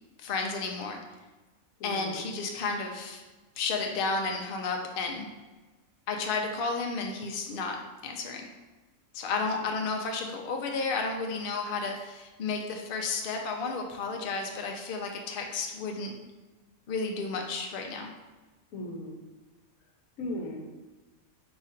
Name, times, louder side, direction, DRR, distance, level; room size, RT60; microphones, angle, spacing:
voice 1, 0.2-1.0 1.8-3.2 3.6-5.3 6.1-7.8 8.0-8.5 9.1-16.1 16.9-18.1, left 4 dB, 60° left, 2 dB, 0.6 m, -32 dB
voice 2, 1.8-2.2 9.6-9.8 18.7-19.2 20.2-20.7, left 1 dB, 75° left, 1 dB, 1.1 m, -38 dB
4.1 x 2.4 x 4.3 m, 1.2 s
omnidirectional pair, 1.4 m